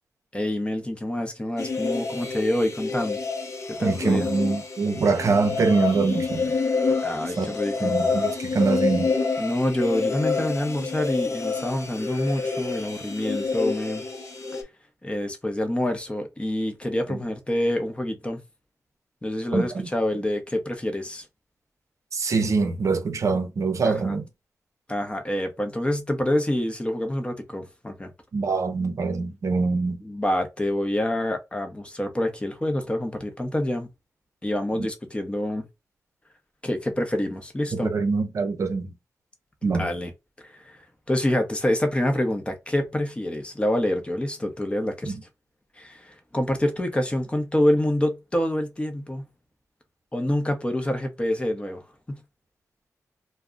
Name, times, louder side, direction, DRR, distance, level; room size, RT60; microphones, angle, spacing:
voice 1, 0.3-3.2 3.8-4.2 7.0-7.9 9.4-14.0 14.5-14.6 15.0-18.4 19.2-21.2 23.8-24.2 24.9-28.1 30.0-33.9 34.4-35.6 36.6-37.9 39.6-40.1 40.4-40.8 41.1-45.1 45.8-49.2 50.1-51.8 52.1-52.2, left 1 dB, 20° left, 0.7 m, -27 dB
sound 1, 1.6-14.6, left 4 dB, 55° left, 0.7 m, -28 dB
voice 2, 3.8-6.5 7.4-7.5 7.8-9.1 17.1-17.2 19.5-19.9 22.1-24.3 28.3-30.0 34.8-34.9 37.7-38.9 39.6-39.9 45.1-45.2, right 4 dB, 60° right, 0.6 m, -24 dB
2.3 x 2.1 x 3.6 m
cardioid pair, 80°, 6 cm